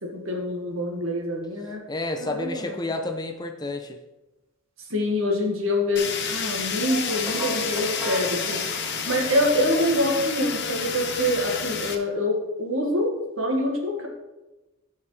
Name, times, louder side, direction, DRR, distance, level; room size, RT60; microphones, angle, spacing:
voice 1, 0.0-1.8 2.2-2.8 4.8-8.6 9.0-14.1, left 1 dB, 70° right, 0 dB, 1.9 m, -25 dB
voice 2, 1.9-4.0, left 2 dB, 20° left, 6 dB, 0.6 m, -30 dB
Fire, 6.0-12.0, left 6 dB, 50° left, 0.9 m, -30 dB
sound 1, 7.1-11.3, right 1 dB, 15° right, 1.6 m, -38 dB
15.0 x 5.5 x 3.3 m, 1.1 s
head